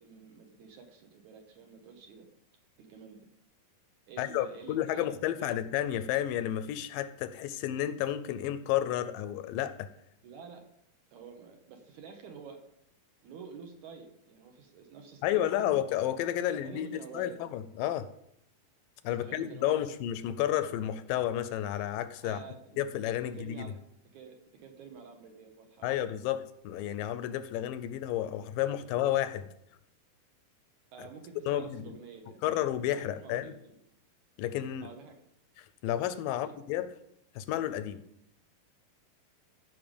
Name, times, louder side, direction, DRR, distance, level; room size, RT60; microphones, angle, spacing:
voice 1, 0.0-2.3 2.8-3.3 4.1-5.6 10.2-10.6 11.1-12.6 13.2-15.8 16.5-17.5 19.2-19.8 22.2-22.8 23.3-26.0 30.9-32.4 32.8-33.8 34.8-35.1 36.3-36.6, right 5 dB, 65° right, 4 dB, 2.3 m, -49 dB
voice 2, 4.2-9.9 15.2-18.1 19.0-22.4 22.8-23.7 25.8-29.5 31.5-32.0 32.4-33.5 34.4-34.9 35.6-36.9 37.4-38.0, left 12 dB, 80° left, 13 dB, 2.2 m, -31 dB
14.5 x 5.7 x 5.2 m, 0.75 s
omnidirectional pair, 4.1 m